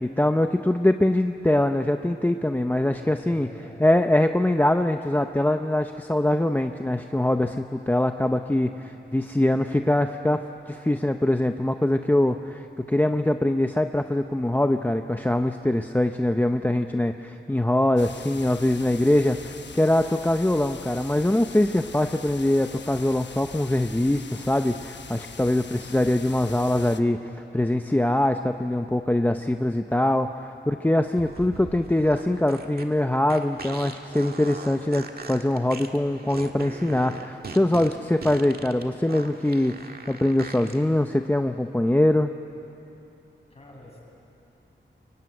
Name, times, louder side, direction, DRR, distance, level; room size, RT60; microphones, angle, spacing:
voice 1, 0.0-3.5 3.8-8.7 9.1-27.2 27.5-42.3, left 1 dB, 10° left, 7 dB, 0.7 m, -23 dB
voice 2, 2.9-3.9 43.5-44.0, left 1 dB, 35° left, -3 dB, 7.6 m, -47 dB
sound 1, 18.0-27.0, left 5 dB, 70° left, 1.0 m, -43 dB
sound 2, 31.1-40.8, right 4 dB, 55° right, 1.7 m, -40 dB
24.5 x 23.0 x 9.6 m, 2.9 s
wide cardioid pair, 125°, 19 cm